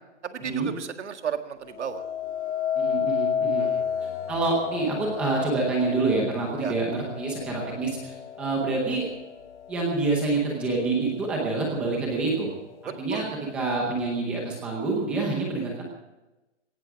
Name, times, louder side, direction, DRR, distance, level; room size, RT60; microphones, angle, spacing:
voice 1, 0.2-2.0 3.6-4.2 6.6-6.7 13.1-13.3, right 7 dB, 70° right, 8 dB, 1.9 m, -34 dB
sound 1, 1.7-10.9 11.4-11.9, left 8 dB, 70° left, 1.0 m, -32 dB
voice 2, 2.8-3.7 4.3-9.0 9.7-12.5 12.8-13.2 13.5-15.8, right 3 dB, 5° right, -1 dB, 0.8 m, -27 dB
17.5 x 14.5 x 4.8 m, 1.0 s
hypercardioid pair, 180°, 36 cm